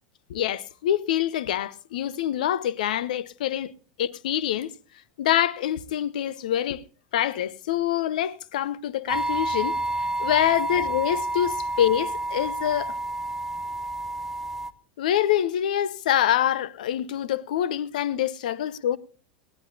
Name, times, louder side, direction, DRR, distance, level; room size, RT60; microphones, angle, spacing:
voice 1, 0.3-3.7 4.0-4.7 5.2-6.8 7.1-9.8 10.2-12.9 15.0-19.0, left 11 dB, 60° left, 0.7 m, -25 dB
sound 1, 9.1-14.7, right 2 dB, 5° right, 0.7 m, -29 dB
20.5 x 16.5 x 2.7 m
figure-of-eight pair, 85°, 5 cm